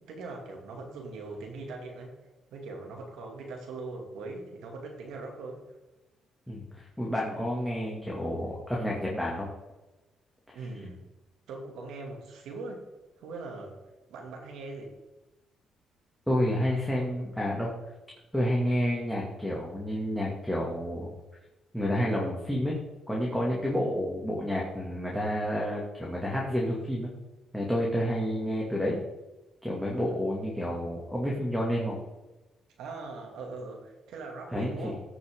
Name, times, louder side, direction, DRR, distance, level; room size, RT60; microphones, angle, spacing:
voice 1, 0.0-2.1 2.5-5.6 10.5-11.0 11.5-12.9 13.2-13.8 14.1-14.9 29.9-30.2 32.8-35.0, right 3 dB, 85° right, 1 dB, 2.4 m, -41 dB
voice 2, 6.5-9.5 16.3-17.7 18.3-21.1 21.7-22.8 23.1-27.1 27.5-29.0 29.6-32.0 34.5-34.9, equal, ahead, -4 dB, 2.3 m, -29 dB
15.5 x 6.2 x 3.8 m, 1.1 s
cardioid pair, 90°, 0 cm